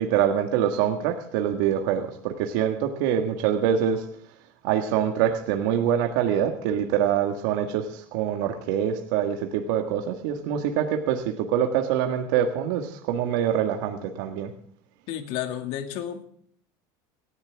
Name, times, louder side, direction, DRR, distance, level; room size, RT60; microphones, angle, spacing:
voice 1, 0.0-4.1 4.6-14.5, right 9 dB, 75° right, 5 dB, 1.8 m, -25 dB
voice 2, 15.1-16.2, left 10 dB, 70° left, 6 dB, 2.3 m, -31 dB
18.5 x 15.0 x 3.5 m, 0.62 s
supercardioid pair, 105°, 11 cm